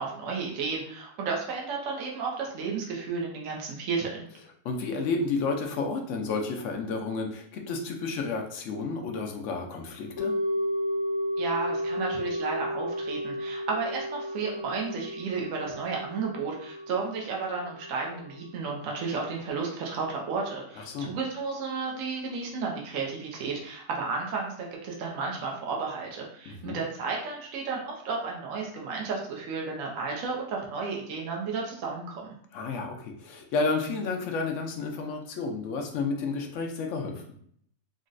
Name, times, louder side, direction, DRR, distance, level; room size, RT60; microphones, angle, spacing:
voice 1, 0.0-4.3 11.4-32.3, right 4 dB, 65° right, -1 dB, 0.9 m, -33 dB
voice 2, 4.6-10.3 20.8-21.1 26.5-26.8 32.5-37.4, left 4 dB, 70° left, 3 dB, 0.7 m, -31 dB
sound 1, 10.2-20.4 20.7-20.8, equal, 30° left, 1.0 m, -33 dB
3.8 x 2.1 x 2.5 m, 0.64 s
omnidirectional pair, 1.6 m